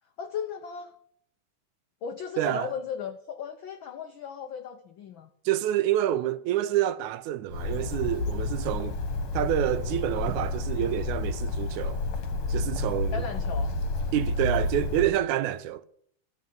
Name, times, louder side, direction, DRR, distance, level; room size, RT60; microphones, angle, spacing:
voice 1, 0.2-0.9 2.0-5.3 13.1-13.7, left 7 dB, 85° left, 1.0 m, -36 dB
voice 2, 2.4-2.7 5.5-9.0 9.3-12.0 12.5-13.2 14.1-15.8, right 12 dB, 85° right, 2.1 m, -28 dB
Bird, 7.5-15.1, left 3 dB, 50° left, 2.0 m, -30 dB
13.0 x 7.2 x 9.2 m
omnidirectional pair, 3.4 m